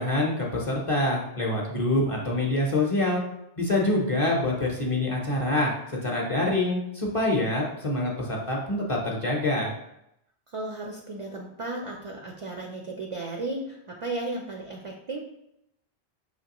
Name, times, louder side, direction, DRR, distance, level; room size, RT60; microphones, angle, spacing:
voice 1, 0.0-3.2 3.6-5.7 6.0-9.7, left 2 dB, 35° left, -2 dB, 0.7 m, -25 dB
voice 2, 10.5-15.2, right 2 dB, 50° right, 1 dB, 0.4 m, -34 dB
5.8 x 3.0 x 2.9 m, 0.81 s
omnidirectional pair, 1.1 m